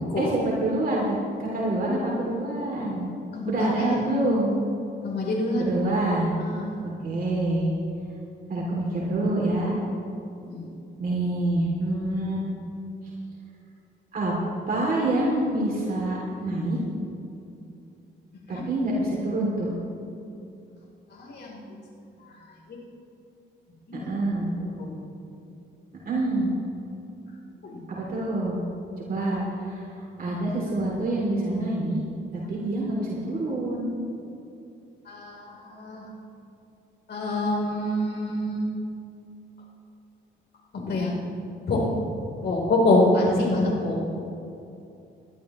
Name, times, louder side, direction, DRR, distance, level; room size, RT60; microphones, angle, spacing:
voice 1, 0.2-1.1 1.4-3.1 3.5-4.6 5.6-6.4 7.0-7.7 8.5-9.7 11.0-12.4 14.1-14.3 14.7-16.8 18.5-19.8 24.1-24.5 26.0-26.6 27.9-28.6 29.0-29.9 30.2-32.0 32.3-33.9, right 1 dB, 45° right, -5 dB, 3.0 m, -26 dB
voice 2, 3.3-3.9 5.0-5.8 6.4-6.7 10.4-10.7 18.5-18.6 21.1-21.7 22.2-22.8 23.9-24.1 24.6-24.9 27.6-27.8 35.1-36.1 37.1-38.7 40.7-41.2 41.7-41.8 42.4-44.1, left 1 dB, 60° left, -2 dB, 3.8 m, -26 dB
21.5 x 12.5 x 3.2 m, 2.7 s
cardioid pair, 90°, 20 cm